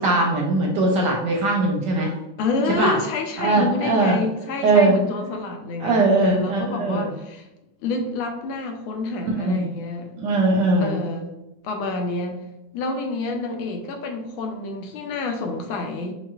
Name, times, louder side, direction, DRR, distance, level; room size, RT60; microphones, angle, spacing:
voice 1, 0.0-2.1 2.8-2.9 3.4-4.2 4.6-4.9 5.8-7.1 9.4-9.6 10.2-11.0, right 2 dB, 70° right, -1 dB, 1.1 m, -20 dB
voice 2, 2.4-7.4 7.8-10.2 10.8-11.3 11.6-12.4 12.7-16.1, left 3 dB, 80° left, 4 dB, 1.4 m, -28 dB
5.7 x 2.4 x 2.3 m, 0.93 s
omnidirectional pair, 2.3 m